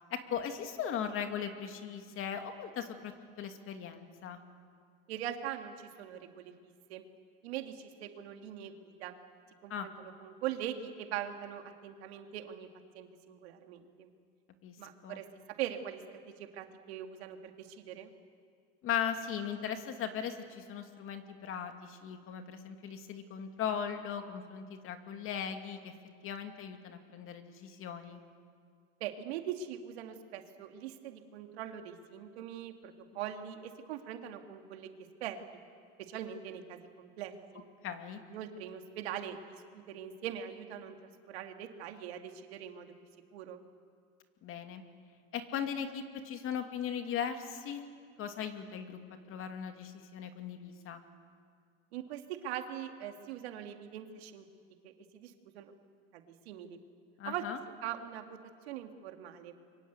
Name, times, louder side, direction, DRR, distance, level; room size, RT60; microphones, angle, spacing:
voice 1, 0.1-3.1 3.4-4.4 9.7-9.9 14.6-14.8 15.0-15.2 18.8-25.9 26.2-28.2 37.8-38.2 44.4-44.8 45.3-47.9 48.2-49.0 49.3-51.0 57.2-57.6, left 8 dB, 45° left, 6 dB, 2.5 m, -38 dB
voice 2, 5.1-6.5 6.9-7.0 7.4-9.2 9.6-12.7 12.9-14.1 14.8-15.3 15.6-18.1 29.0-34.9 35.2-35.4 36.1-37.6 38.3-40.9 41.3-42.9 43.3-43.6 51.9-54.4 54.8-55.7 56.1-56.8 57.2-57.4 57.8-58.4 58.7-59.6, right 10 dB, 85° right, 5 dB, 2.4 m, -42 dB
28.5 x 23.5 x 8.3 m, 2.1 s
supercardioid pair, 125°, 31 cm